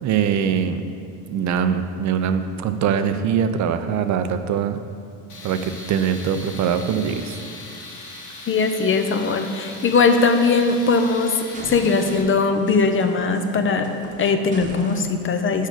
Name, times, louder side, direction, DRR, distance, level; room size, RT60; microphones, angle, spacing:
voice 1, 0.0-0.8 1.3-4.8 5.4-7.4, right 7 dB, 50° right, 9 dB, 0.6 m, -22 dB
Tools, 5.3-12.2, left 2 dB, 55° left, 1.4 m, -39 dB
voice 2, 8.5-13.9 14.2-15.7, left 4 dB, 35° left, 7 dB, 0.7 m, -20 dB
sound 1, 9.7-11.1 11.5-15.1, right 1 dB, 20° right, 1.1 m, -39 dB
6.5 x 5.1 x 6.6 m, 2.4 s
supercardioid pair, 90°, 36 cm